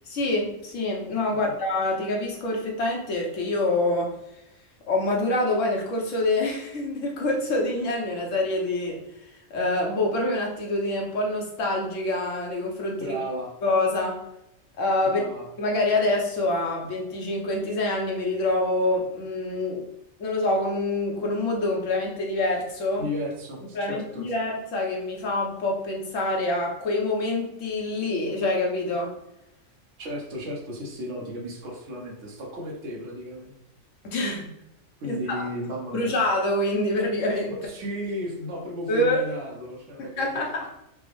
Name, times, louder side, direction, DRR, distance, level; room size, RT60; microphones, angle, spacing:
voice 1, 0.1-4.2 4.9-9.0 9.5-13.2 13.6-14.2 14.8-15.3 15.6-19.8 20.2-23.1 23.7-29.1 34.0-34.5 35.0-35.4 35.9-37.5 38.9-39.2 40.0-40.7, left 2 dB, 75° left, 0 dB, 1.2 m, -26 dB
voice 2, 13.0-13.5 15.0-15.4 23.0-24.2 30.0-33.5 35.0-36.1 37.6-40.4, equal, 65° right, -1 dB, 1.2 m, -34 dB
5.0 x 2.0 x 3.1 m, 0.84 s
omnidirectional pair, 1.3 m